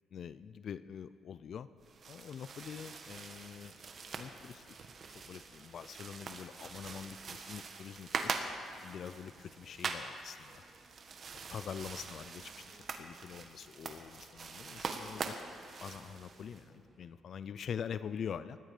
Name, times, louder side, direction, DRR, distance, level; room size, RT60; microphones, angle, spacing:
voice 1, 0.1-1.7 2.1-3.7 4.2-4.7 5.3-8.3 8.8-10.6 11.3-15.4 15.8-18.6, left 7 dB, 60° left, 15 dB, 0.4 m, -44 dB
sound 1, 1.8-16.6, right 5 dB, 50° right, 1.4 m, -43 dB
sound 2, 2.2-17.2, right 2 dB, 20° right, 2.3 m, -65 dB
19.5 x 14.5 x 5.0 m, 2.4 s
cardioid pair, 90°, 0 cm